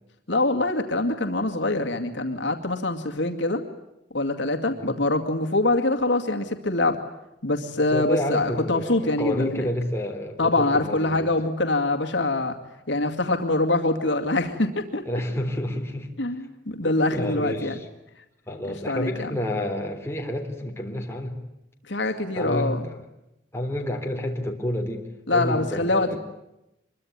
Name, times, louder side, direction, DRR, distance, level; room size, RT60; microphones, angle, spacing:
voice 1, 0.3-3.6 4.1-7.0 7.4-9.7 10.4-12.6 12.9-15.0 16.2-17.7 18.9-19.3 21.9-22.9 25.3-26.2, left 2 dB, 70° left, 4 dB, 2.3 m, -24 dB
voice 2, 7.9-11.3 15.1-16.1 16.8-17.9 18.5-21.3 22.3-23.0 23.5-26.2, left 1 dB, 15° left, 2 dB, 3.5 m, -29 dB
25.5 x 22.5 x 9.6 m, 0.89 s
head